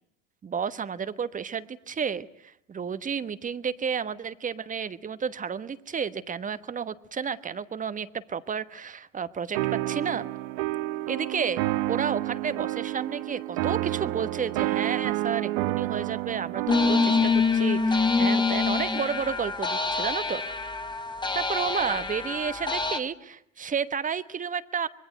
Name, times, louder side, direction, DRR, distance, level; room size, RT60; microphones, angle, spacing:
voice 1, 0.4-10.3 11.1-11.6 11.9-20.4 21.3-24.9, right 6 dB, 20° right, 14 dB, 1.2 m, -31 dB
sound 1, 9.5-17.3, right 17 dB, 50° right, 1.1 m, -29 dB
sound 2, 16.7-23.0, left 4 dB, 10° left, 1.7 m, -25 dB
25.5 x 22.0 x 9.2 m, 0.74 s
hypercardioid pair, 90°, 37 cm